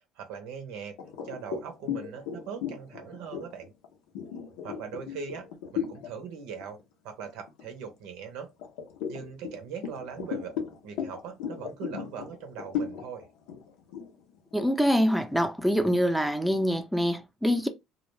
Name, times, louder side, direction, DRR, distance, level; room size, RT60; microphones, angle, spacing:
voice 1, 0.2-1.0 1.2-3.7 4.6-6.8 7.0-8.5 9.1-10.5 10.8-13.3, right 6 dB, 80° right, 0.6 m, -40 dB
sound 1, 1.0-6.1 6.6-6.8 7.2-8.1 8.6-15.3, left 8 dB, 85° left, 0.6 m, -36 dB
voice 2, 14.5-17.7, equal, ahead, 0.5 m, -25 dB
2.3 x 2.1 x 3.1 m
supercardioid pair, 80°, 0 cm